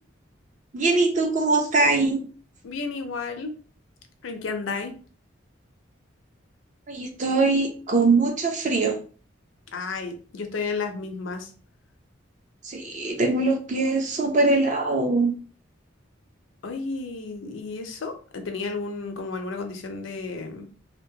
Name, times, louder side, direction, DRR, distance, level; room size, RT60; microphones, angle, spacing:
voice 1, 0.7-2.2 6.9-9.0 12.6-15.3, right 3 dB, 40° right, 3 dB, 0.5 m, -22 dB
voice 2, 2.6-3.5 4.2-4.9 9.7-11.5 16.6-20.7, left 4 dB, 80° left, 6 dB, 0.5 m, -32 dB
2.8 x 2.1 x 2.7 m, 0.39 s
head